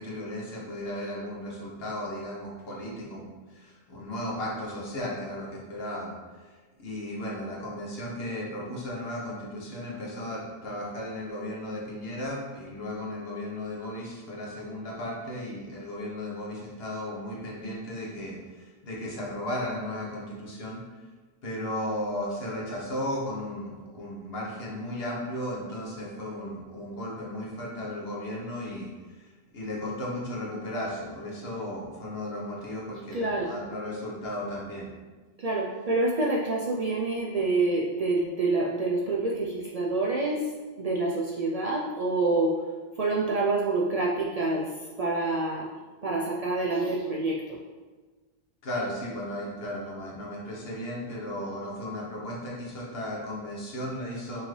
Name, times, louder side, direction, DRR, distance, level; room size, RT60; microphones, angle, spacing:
voice 1, 0.0-6.5 6.8-20.8 21.4-34.9 48.6-54.4, left 1 dB, 70° left, -3 dB, 1.2 m, -35 dB
voice 2, 33.1-33.5 35.4-40.5 40.8-42.6 43.0-44.7 45.0-45.7 46.0-47.6, right 2 dB, 55° right, -4 dB, 0.4 m, -27 dB
5.6 x 2.6 x 3.1 m, 1.3 s
omnidirectional pair, 1.1 m